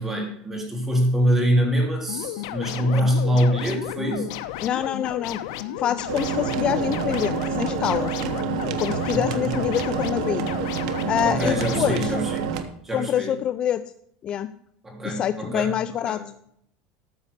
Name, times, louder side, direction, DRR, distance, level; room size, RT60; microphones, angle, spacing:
voice 1, 0.0-4.3 9.1-9.5 11.2-12.4 12.8-13.3 14.8-15.7 16.1-16.2, equal, 10° right, 0 dB, 3.1 m, -24 dB
sound 1, 2.1-12.2, left 12 dB, 70° left, 1.0 m, -33 dB
voice 2, 4.6-5.4 5.8-8.2 8.6-10.5 11.1-12.1 12.9-13.8 14.2-14.5 15.0-16.2, left 10 dB, 30° left, 12 dB, 0.4 m, -26 dB
sound 2, 6.1-12.6, right 7 dB, 80° right, 1.4 m, -28 dB
13.5 x 5.6 x 6.7 m, 0.71 s
supercardioid pair, 160°, 3 cm